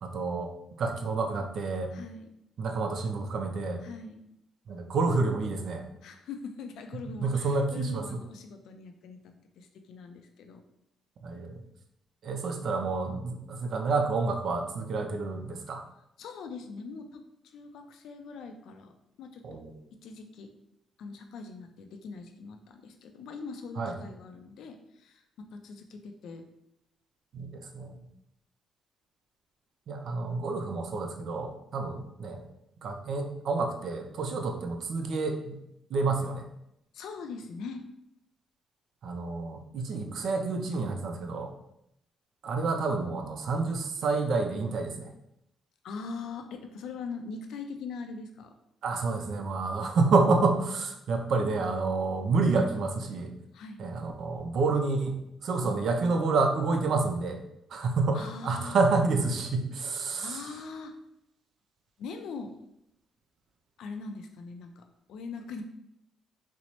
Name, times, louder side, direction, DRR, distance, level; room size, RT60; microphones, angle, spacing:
voice 1, 0.0-0.5 0.8-1.9 2.6-3.8 4.7-5.8 7.2-8.2 11.2-11.6 12.2-15.8 19.4-19.7 23.8-24.0 27.3-28.0 29.9-32.4 32.8-35.6 35.9-36.4 39.0-41.5 42.4-45.1 48.8-53.3 53.8-57.4 57.7-60.5, right 3 dB, 65° right, 4 dB, 0.5 m, -29 dB
voice 2, 1.9-2.3 3.8-4.2 6.0-10.6 16.2-19.6 19.9-20.5 21.0-26.5 36.9-37.8 45.8-48.5 53.5-53.8 58.1-58.8 60.2-60.9 62.0-62.5 63.8-65.6, left 4 dB, 80° left, 6 dB, 0.4 m, -42 dB
4.1 x 2.0 x 3.0 m, 0.79 s
cardioid pair, 90°, 0 cm